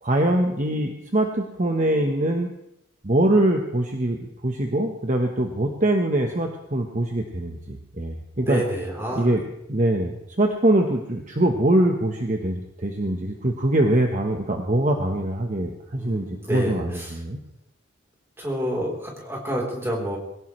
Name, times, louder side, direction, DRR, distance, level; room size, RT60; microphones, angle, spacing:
voice 1, 0.0-2.5 3.0-8.6 9.1-9.4 9.7-17.4, right 1 dB, 40° right, 2 dB, 1.2 m, -23 dB
voice 2, 8.4-9.4 16.0-17.2 18.4-20.2, equal, 10° right, -2 dB, 3.9 m, -29 dB
22.0 x 17.0 x 3.3 m, 0.82 s
head